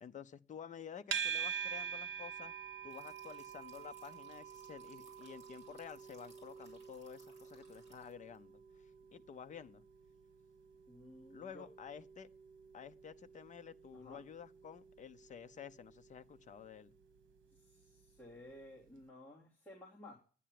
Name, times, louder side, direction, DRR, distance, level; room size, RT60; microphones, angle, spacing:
voice 1, 0.0-2.5 2.8-9.8 11.3-12.3 12.7-16.9, left 7 dB, 40° left, 0.7 m, -51 dB
sound 1, 1.1-18.3, right 8 dB, 75° right, 1.3 m, -47 dB
sound 2, 2.9-8.4, right 1 dB, 35° right, 6.0 m, -66 dB
voice 2, 10.9-11.7 13.9-14.2 17.5-20.1, left 1 dB, 5° left, 3.0 m, -55 dB
10.0 x 9.9 x 7.6 m
wide cardioid pair, 180°, 20 cm